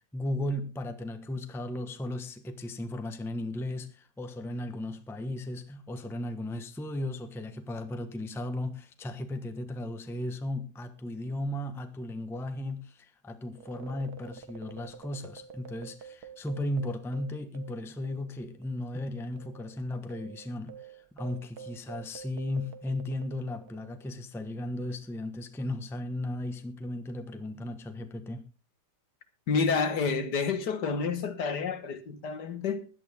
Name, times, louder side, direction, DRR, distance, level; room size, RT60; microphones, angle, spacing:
voice 1, 0.1-28.4, left 1 dB, ahead, 0.9 m, -36 dB
sound 1, 13.5-18.4 18.6-18.7 19.4-24.1, right 7 dB, 60° right, 1.7 m, -49 dB
voice 2, 29.5-32.9, left 5 dB, 70° left, 1.9 m, -29 dB
16.5 x 11.5 x 3.5 m
omnidirectional pair, 1.9 m